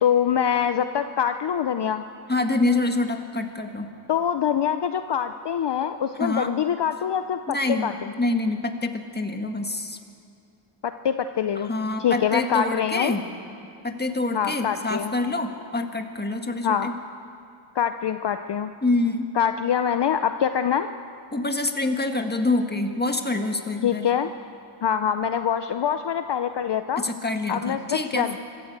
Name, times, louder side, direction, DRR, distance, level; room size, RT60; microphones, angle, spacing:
voice 1, 0.0-2.0 4.1-8.1 10.8-11.7 12.0-13.2 14.3-15.2 16.6-16.9 17.7-18.7 19.3-20.9 23.8-24.3 24.8-27.1 27.5-28.4, left 8 dB, 55° left, 9 dB, 0.7 m, -24 dB
voice 2, 2.3-3.9 6.2-6.5 7.5-7.9 8.2-10.0 11.6-13.2 13.8-16.9 18.8-19.3 21.3-24.1 27.0-28.4, left 2 dB, 20° left, 5 dB, 1.7 m, -26 dB
25.5 x 13.5 x 8.1 m, 2.5 s
wide cardioid pair, 90°, 50 cm